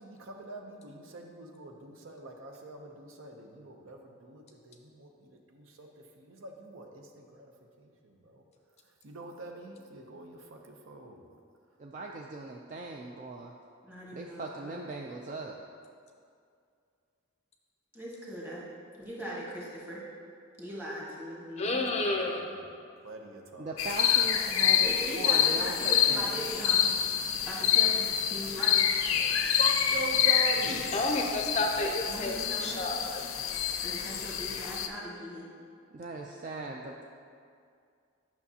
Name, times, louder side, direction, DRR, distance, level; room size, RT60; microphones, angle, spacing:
voice 1, 0.0-5.9 6.2-7.5 7.8-8.4 9.0-11.3 21.8-22.7 23.0-23.8 29.1-30.9, right 2 dB, 70° right, 2 dB, 0.6 m, -42 dB
voice 2, 11.8-13.5 14.1-15.6 23.6-26.3 35.9-37.0, right 3 dB, 35° right, 0 dB, 0.3 m, -39 dB
voice 3, 13.8-14.8 17.9-18.6 19.0-20.0 20.6-22.1 24.5-26.9 27.4-28.8 32.1-33.1 33.8-35.5, equal, 10° right, -7 dB, 1.4 m, -40 dB
voice 4, 21.6-22.4 30.9-33.2, left 2 dB, 30° left, 2 dB, 0.5 m, -30 dB
sound 1, 23.8-34.9, left 9 dB, 80° left, 0.5 m, -27 dB
sound 2, 23.9-30.4 30.6-31.3 31.5-31.6, right 1 dB, 55° right, 1.7 m, -50 dB
9.4 x 5.9 x 2.8 m, 2.3 s
head